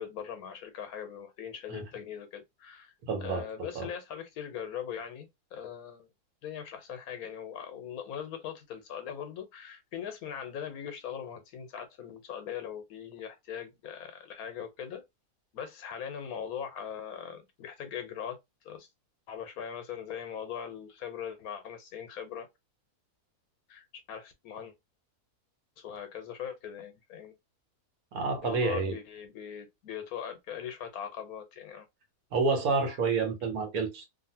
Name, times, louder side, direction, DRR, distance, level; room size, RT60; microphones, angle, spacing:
voice 1, 0.0-2.9 3.2-6.1 6.4-15.0 15.5-18.4 18.6-18.9 19.3-22.5 23.7-24.7 25.8-27.3 28.4-31.9, left 8 dB, 80° left, 1.2 m, -40 dB
voice 2, 3.1-3.5 3.7-3.9 28.1-28.9 32.3-34.0, right 4 dB, 75° right, 1.4 m, -29 dB
2.8 x 2.6 x 2.7 m
omnidirectional pair, 1.6 m